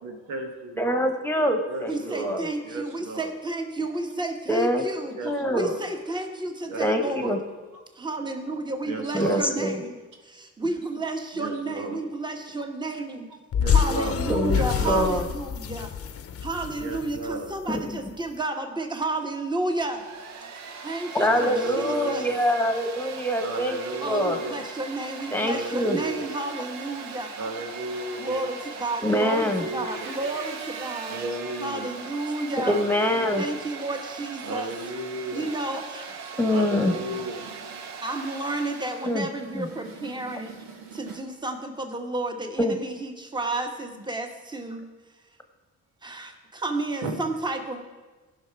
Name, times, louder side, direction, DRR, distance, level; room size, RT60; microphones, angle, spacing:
voice 1, 0.0-1.1 1.7-3.3 5.1-5.8 6.7-7.4 8.8-9.4 11.3-12.0 13.6-14.2 14.5-15.1 16.8-17.5 21.2-22.4 23.4-24.6 25.5-26.3 27.4-28.4 29.1-31.9 32.6-33.5 34.4-35.5 36.5-38.0 39.3-41.2 47.0-47.2, right 2 dB, 90° right, 3 dB, 1.5 m, -35 dB
voice 2, 0.8-2.4 4.5-4.8 5.2-5.7 6.8-7.4 9.1-9.8 14.3-14.6 14.8-15.3 17.7-17.9 21.1-24.4 25.3-26.0 29.0-29.6 32.7-33.4 36.4-36.9 39.0-39.3 39.5-39.7 42.6-42.8, equal, 5° left, 5 dB, 1.2 m, -24 dB
voice 3, 1.9-5.2 5.5-7.4 7.9-10.0 10.2-13.3 13.7-15.9 16.4-20.1 20.8-22.3 24.0-27.3 28.2-31.2 31.6-32.8 33.4-34.7 35.3-36.2 38.0-40.6 40.9-44.9 46.0-47.8, right 2 dB, 15° right, 5 dB, 1.2 m, -31 dB
sound 1, 13.5-17.9, left 7 dB, 50° left, 0.8 m, -26 dB
Domestic sounds home sounds, 19.7-39.2, right 5 dB, 65° right, 1.0 m, -40 dB
15.5 x 5.8 x 4.7 m, 1.2 s
cardioid pair, 90°, 30 cm